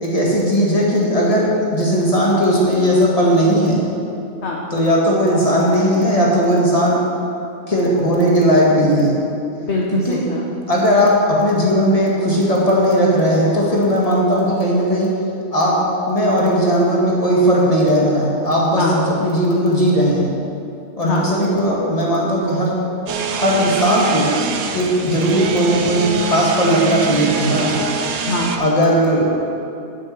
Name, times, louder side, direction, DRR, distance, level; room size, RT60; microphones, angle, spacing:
voice 1, 0.0-3.8 4.7-7.0 7.7-9.2 10.1-10.2 10.7-15.1 15.5-15.8 16.1-20.3 21.0-22.7 23.3-24.3 24.7-27.7 28.6-29.5, equal, 20° left, -4 dB, 2.0 m, -17 dB
voice 2, 9.6-10.5 18.8-19.0 21.0-21.3 28.2-28.6, left 2 dB, 45° left, -3 dB, 1.2 m, -23 dB
sound 1, 23.1-28.6, right 5 dB, 85° right, 1.4 m, -24 dB
9.8 x 7.5 x 6.1 m, 2.7 s
omnidirectional pair, 1.7 m